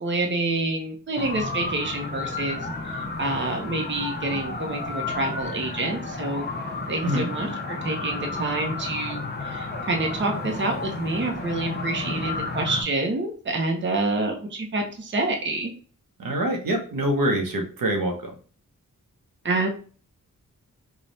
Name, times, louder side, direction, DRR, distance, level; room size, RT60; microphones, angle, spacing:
voice 1, 0.0-6.5 6.9-15.7 19.4-19.7, right 2 dB, 35° right, 3 dB, 0.7 m, -28 dB
sound 1, 1.1-12.8, left 3 dB, 30° left, 0.7 m, -32 dB
voice 2, 16.2-18.3, right 1 dB, 80° right, 3 dB, 0.9 m, -25 dB
3.3 x 2.3 x 3.9 m, 0.40 s
wide cardioid pair, 120°, 34 cm